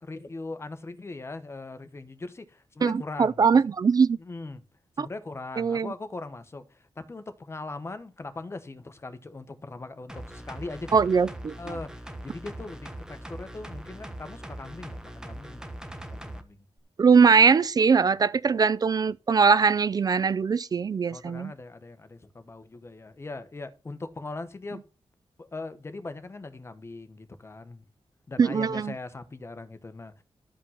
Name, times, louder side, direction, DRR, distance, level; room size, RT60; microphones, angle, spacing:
voice 1, 0.0-3.4 4.2-4.6 5.0-11.1 11.6-15.7 16.1-16.6 21.1-24.8 25.4-27.8 28.3-30.2, left 3 dB, 25° left, 1.1 m, -40 dB
voice 2, 2.8-4.2 5.0-5.1 5.6-5.9 10.9-11.5 17.0-21.5 28.4-28.9, right 5 dB, 40° right, 0.4 m, -21 dB
sound 1, 10.1-16.4 16.8-16.9, right 1 dB, 5° right, 1.2 m, -41 dB
12.5 x 5.3 x 5.8 m
wide cardioid pair, 160°, 10 cm